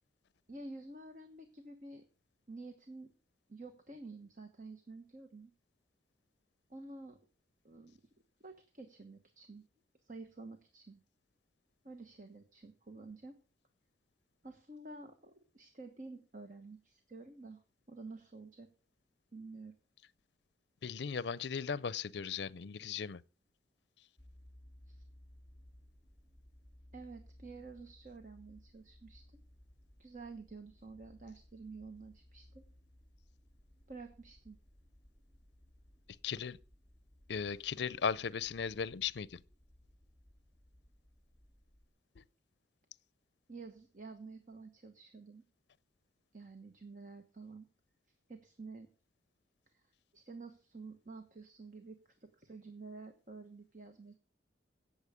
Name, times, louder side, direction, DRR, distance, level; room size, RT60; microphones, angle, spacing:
voice 1, 0.5-2.0 2.5-3.1 3.5-5.5 6.7-7.2 7.6-8.0 8.4-9.6 10.0-11.0 11.8-13.4 14.4-17.6 17.9-18.7 19.3-19.7 24.9-25.0 26.9-29.4 30.0-32.6 33.9-34.6 43.5-45.4 46.3-47.7 48.3-48.9 49.7-49.8 50.1-54.2, right 3 dB, 45° right, 1.2 m, -50 dB
voice 2, 20.8-23.2 36.2-36.6 37.3-39.4 42.2-42.3, left 6 dB, 70° left, 0.5 m, -37 dB
sound 1, 24.2-41.9, left 1 dB, 20° right, 2.6 m, -61 dB
16.5 x 7.3 x 5.0 m
head